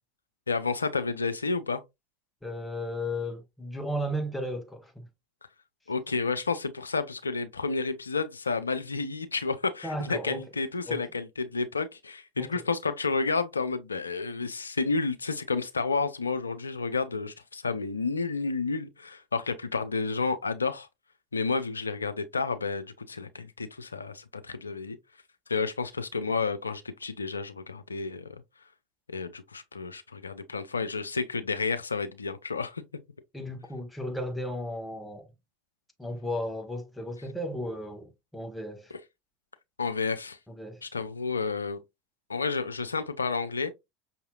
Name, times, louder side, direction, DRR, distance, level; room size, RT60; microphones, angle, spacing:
voice 1, 0.5-1.8 5.9-20.9 21.3-25.0 25.5-28.4 29.1-32.8 39.8-40.4 40.8-41.8 42.3-43.7, left 4 dB, 80° left, 0.4 m, -31 dB
voice 2, 2.4-5.1 9.8-10.4 10.9-11.0 12.4-12.6 33.3-35.3 36.0-38.9 40.5-40.8, equal, 5° left, 1.0 m, -35 dB
5.6 x 2.8 x 2.3 m
figure-of-eight pair, 75°, 0 cm